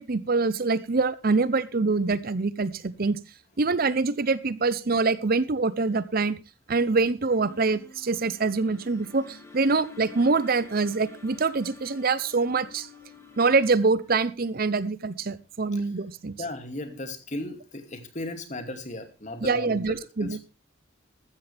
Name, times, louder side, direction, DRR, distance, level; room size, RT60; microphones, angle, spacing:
voice 1, 0.0-3.2 3.6-6.4 6.7-12.9 13.4-16.4 19.4-20.4, right 4 dB, 50° right, 17 dB, 0.7 m, -25 dB
sound 1, 7.4-13.7, left 4 dB, 15° left, 3.1 m, -48 dB
voice 2, 16.4-19.9 20.2-20.4, left 1 dB, 40° left, 7 dB, 2.6 m, -36 dB
14.0 x 13.5 x 3.4 m, 0.30 s
head